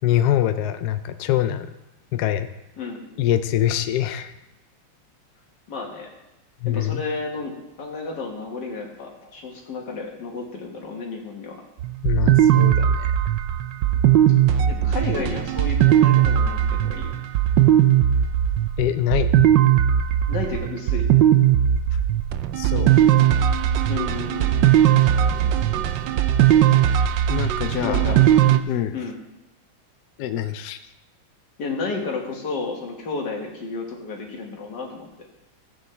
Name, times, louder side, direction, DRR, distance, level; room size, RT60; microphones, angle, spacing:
voice 1, 0.0-1.7 2.1-2.5 3.2-4.3 6.6-7.0 12.0-13.1 18.8-19.4 22.6-22.9 27.3-28.1 28.7-28.9 30.2-30.8, left 12 dB, 75° left, 9 dB, 0.9 m, -24 dB
voice 2, 2.8-3.3 5.7-6.1 6.7-7.5 7.8-11.6 12.5-12.6 13.8-14.1 14.7-17.2 20.3-21.1 23.9-24.7 27.8-28.2 28.9-29.2 31.6-35.3, left 4 dB, 60° left, 0 dB, 2.1 m, -32 dB
sound 1, 11.8-28.6, right 11 dB, 75° right, 1.2 m, -18 dB
15.0 x 8.4 x 3.3 m, 0.94 s
omnidirectional pair, 2.2 m